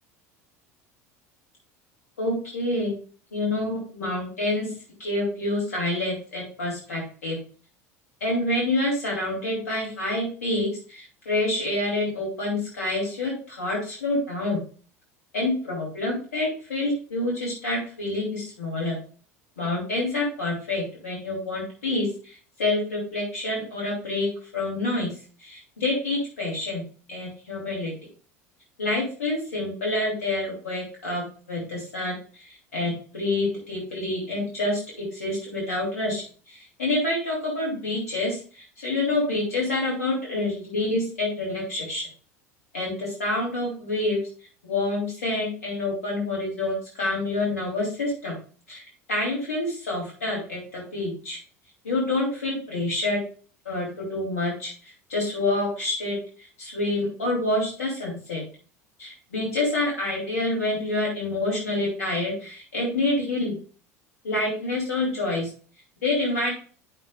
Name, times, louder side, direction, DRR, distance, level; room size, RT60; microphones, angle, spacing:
voice 1, 2.2-3.0 3.3-4.7 5.0-7.4 8.2-14.6 15.3-19.0 19.6-24.3 24.5-25.1 25.4-26.8 27.1-27.9 28.8-32.2 32.4-42.0 42.7-44.2 44.6-48.3 48.7-48.8 49.1-51.4 51.8-53.2 53.6-56.2 56.6-58.4 59.0-63.6 64.2-65.5 66.0-66.5, left 2 dB, 75° left, -3 dB, 2.6 m, -27 dB
9.8 x 5.9 x 2.3 m, 0.40 s
figure-of-eight pair, 70°, 8 cm